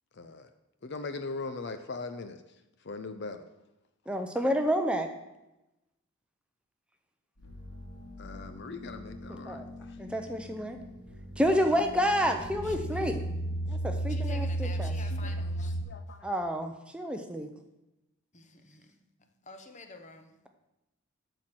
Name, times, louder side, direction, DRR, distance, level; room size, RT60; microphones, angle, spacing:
voice 1, 0.2-0.5 0.8-2.4 2.8-3.5 8.2-10.4 14.0-14.1 15.1-16.3, left 3 dB, 50° left, 0.5 m, -41 dB
voice 2, 4.1-5.1 9.4-9.7 10.0-10.8 11.4-13.2 13.7-14.9 16.2-17.5, equal, 5° right, 0.6 m, -29 dB
sound 1, 7.4-15.8, right 1 dB, 90° left, 2.6 m, -36 dB
voice 3, 12.6-13.2 14.1-15.8 18.3-18.9 19.5-20.3, left 3 dB, 35° left, 1.0 m, -49 dB
11.5 x 4.5 x 7.6 m
head